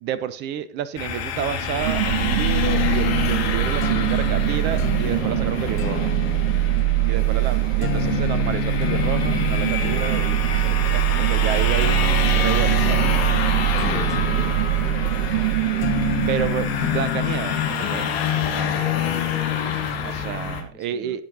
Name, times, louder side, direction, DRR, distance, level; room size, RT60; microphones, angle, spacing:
voice 1, 0.0-6.1 7.1-13.0 16.3-18.7 20.0-21.2, right 9 dB, 30° right, 16 dB, 0.8 m, -30 dB
sound 1, 1.0-20.6, left 8 dB, 60° left, 2.9 m, -28 dB
sound 2, 1.8-17.7, right 19 dB, 50° right, 0.5 m, -23 dB
sound 3, 2.7-18.8, left 12 dB, 35° left, 1.6 m, -30 dB
voice 2, 13.7-15.1 15.7-15.9 19.1-21.2, left 3 dB, 10° left, 6 dB, 1.4 m, -42 dB
17.5 x 6.6 x 4.1 m, 0.41 s
figure-of-eight pair, 90°, 34 cm